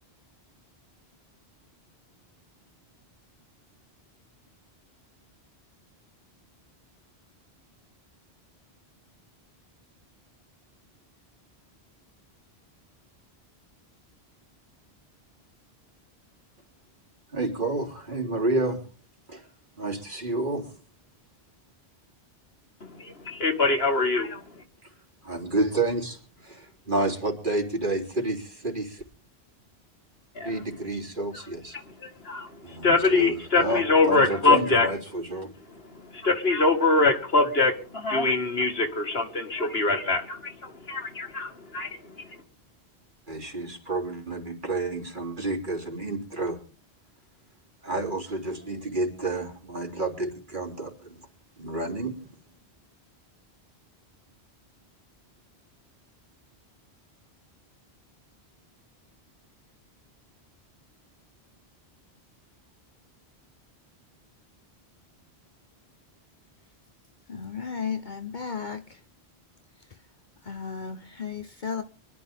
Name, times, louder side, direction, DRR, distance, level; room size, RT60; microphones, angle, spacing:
voice 1, 17.3-18.8 19.3-19.5 19.8-20.7 25.2-29.0 30.4-31.8 32.6-35.5 43.3-46.6 47.8-51.2 51.6-52.3, right 2 dB, 50° right, 3.8 m, -30 dB
voice 2, 22.8-24.6 30.3-30.6 31.7-34.9 35.7-42.4, left 3 dB, 65° left, 2.5 m, -24 dB
voice 3, 67.3-68.8 70.5-71.8, left 6 dB, 45° left, 1.2 m, -34 dB
24.5 x 12.5 x 3.7 m
omnidirectional pair, 1.1 m